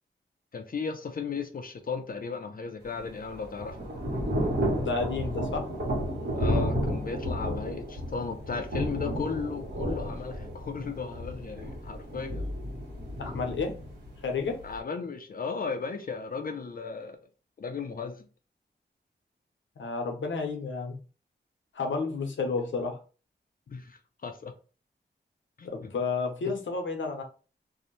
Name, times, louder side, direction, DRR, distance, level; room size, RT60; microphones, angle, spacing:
voice 1, 0.5-3.8 6.4-12.4 14.6-17.2 17.6-18.3 23.7-24.5 25.6-25.9 26.5-26.6, left 5 dB, 50° left, 0.4 m, -35 dB
Thunder / Rain, 2.9-14.8, equal, 60° right, 1.1 m, -32 dB
voice 2, 4.8-5.7 13.2-13.7 14.2-14.6 19.8-21.0 21.7-22.9 25.6-27.2, left 4 dB, 85° left, 0.7 m, -31 dB
2.6 x 2.1 x 3.0 m
wide cardioid pair, 100°, 19 cm